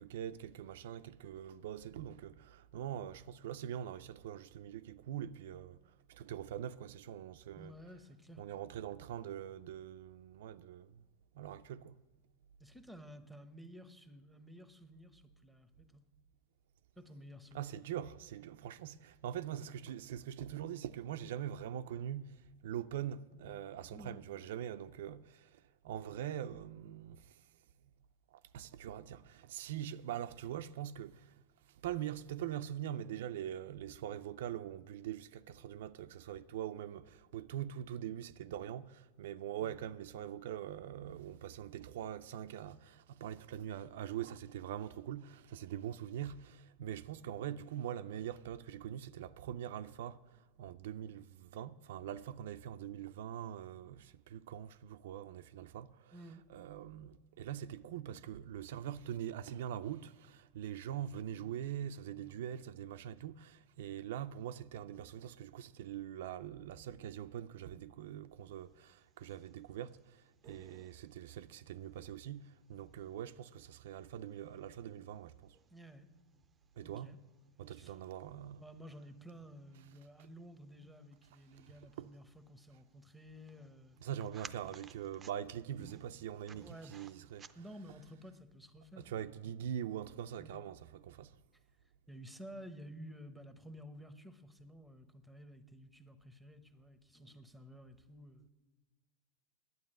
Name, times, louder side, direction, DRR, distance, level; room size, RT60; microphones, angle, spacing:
voice 1, 0.0-7.7 8.4-11.0 11.3-12.0 17.5-27.4 28.3-31.4 31.7-56.2 56.5-75.6 76.8-77.2 77.6-78.6 81.5-82.1 84.0-87.5 89.0-91.4, right 10 dB, 75° right, 0.4 m, -43 dB
voice 2, 7.6-8.4 12.6-16.0 17.0-17.7 23.9-24.2 56.1-56.5 75.7-76.1 76.8-77.2 77.7-78.0 78.6-84.0 86.5-87.0 87.5-89.6 90.4-90.6 92.1-98.5, equal, ahead, 0.8 m, -53 dB
sound 1, 68.6-88.0, right 6 dB, 20° right, 0.5 m, -61 dB
9.5 x 9.1 x 8.9 m
supercardioid pair, 135°, 0 cm